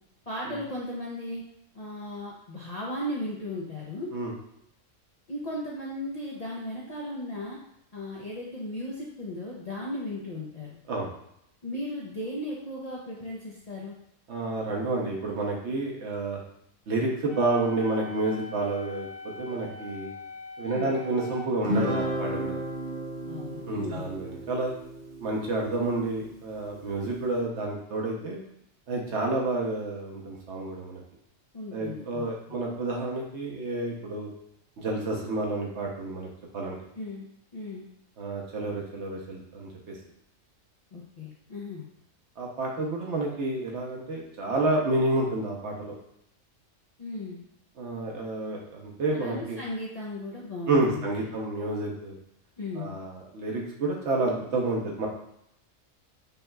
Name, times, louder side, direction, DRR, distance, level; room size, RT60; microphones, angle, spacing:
voice 1, 0.3-1.4 1.7-4.1 5.3-7.6 7.9-10.8 11.6-14.0 20.6-20.9 23.3-24.1 31.5-32.3 36.9-37.3 37.5-37.9 40.9-41.8 47.0-47.4 49.1-51.1 52.6-52.9, left 1 dB, 45° left, -5 dB, 0.5 m, -36 dB
voice 2, 14.3-16.4 16.9-19.1 19.4-20.1 20.6-22.5 23.7-24.7 25.2-28.4 28.9-31.0 31.7-34.3 34.8-36.3 36.5-36.8 38.2-40.0 42.4-45.9 47.8-49.6 50.7-52.1 52.8-55.1, right 2 dB, 60° right, -1 dB, 1.0 m, -29 dB
Wind instrument woodwind instrument, 17.3-21.5, left 3 dB, 85° right, 1.7 m, -42 dB
Guitar, 21.6-26.3, equal, 40° right, 0.8 m, -33 dB
5.3 x 2.9 x 2.2 m, 0.76 s
omnidirectional pair, 1.4 m